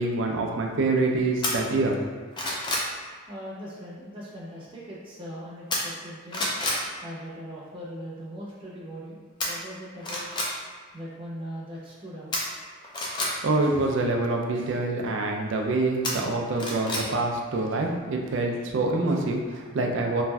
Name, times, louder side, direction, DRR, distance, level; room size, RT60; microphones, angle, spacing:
voice 1, 0.0-2.0 13.4-20.2, right 2 dB, 60° right, 1 dB, 0.4 m, -26 dB
sound 1, 1.4-1.5 2.0-2.9 5.7-6.1 6.3-6.8 9.4-9.5 10.0-10.5 12.3-13.3 16.0-17.1 17.4-17.5, left 1 dB, 20° left, 0.3 m, -28 dB
voice 2, 3.3-6.6 7.0-10.3 10.9-12.3, equal, 25° right, -8 dB, 0.7 m, -40 dB
3.1 x 2.5 x 2.2 m, 1.5 s
head